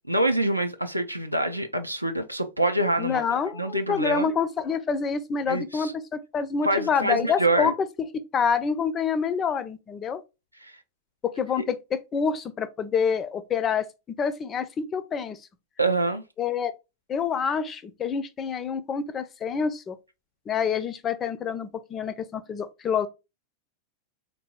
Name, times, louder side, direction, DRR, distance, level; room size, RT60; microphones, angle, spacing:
voice 1, 0.1-3.2 3.5-4.3 5.5-5.9 6.6-7.7 10.6-10.7 15.8-16.2, right 2 dB, 90° right, 0.4 m, -25 dB
voice 2, 3.0-7.7 8.0-10.2 11.2-13.9 14.2-15.4 16.4-16.7 17.1-20.0 20.5-23.1, left 6 dB, 25° left, 0.4 m, -27 dB
4.0 x 2.6 x 2.3 m
figure-of-eight pair, 90°, 0 cm